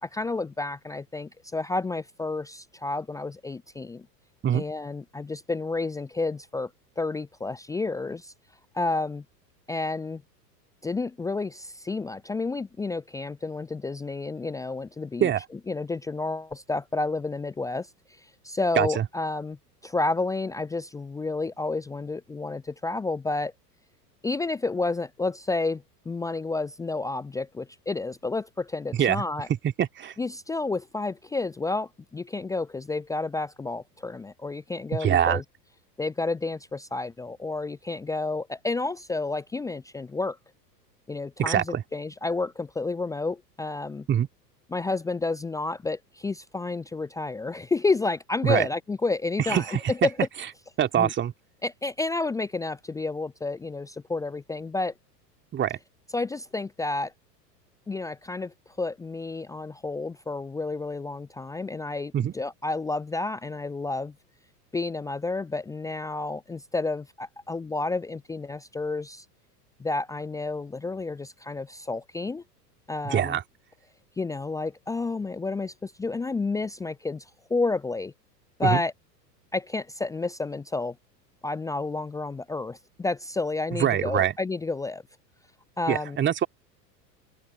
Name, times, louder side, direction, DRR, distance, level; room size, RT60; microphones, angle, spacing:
voice 1, 0.0-4.0 4.5-6.7 7.0-8.3 8.7-9.2 9.7-10.2 10.8-15.3 15.7-17.9 18.4-19.6 19.8-23.5 24.2-29.5 30.2-35.4 36.0-40.4 41.1-44.1 44.7-49.6 50.0-50.1 51.0-51.1 51.6-54.9 56.1-57.1 57.9-64.1 64.7-69.2 69.8-72.4 72.9-73.4 74.2-77.2 77.5-78.1 78.6-78.9 79.5-80.9 81.4-85.0 85.8-86.2, left 3 dB, 5° left, 0.7 m, -30 dB
voice 2, 18.8-19.1 28.9-29.2 29.6-30.2 35.0-35.4 41.4-41.8 44.1-44.3 48.4-48.7 49.4-50.1 50.8-51.3 55.5-55.8 62.1-62.3 73.0-73.4 78.6-78.8 83.8-84.3 85.9-86.5, right 10 dB, 20° right, 2.8 m, -24 dB
open air
figure-of-eight pair, 90°, 49 cm